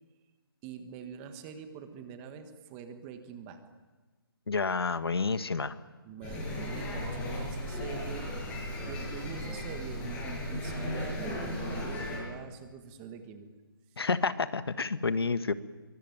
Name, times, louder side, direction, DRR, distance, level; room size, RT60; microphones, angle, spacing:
voice 1, 0.6-3.6 6.0-8.3 8.9-13.5, right 7 dB, 15° right, 8 dB, 1.5 m, -44 dB
voice 2, 4.5-5.7 14.0-15.5, left 4 dB, 90° left, 12 dB, 1.5 m, -29 dB
sound 1, 6.2-12.2, left 1 dB, 10° left, 6.7 m, -36 dB
24.0 x 23.5 x 9.4 m, 1.3 s
hypercardioid pair, 170°, 12 cm